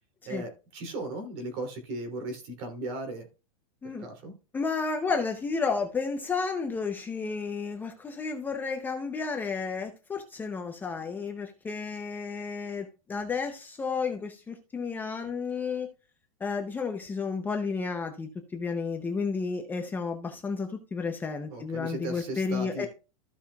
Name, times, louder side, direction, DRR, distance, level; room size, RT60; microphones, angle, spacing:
voice 1, 0.3-3.3 3.8-4.3 21.5-22.9, right 2 dB, 45° right, 6 dB, 3.0 m, -37 dB
voice 2, 4.5-15.9 16.4-22.9, left 4 dB, 10° left, 3 dB, 0.6 m, -32 dB
15.0 x 5.6 x 2.3 m, 0.32 s
supercardioid pair, 165°, 18 cm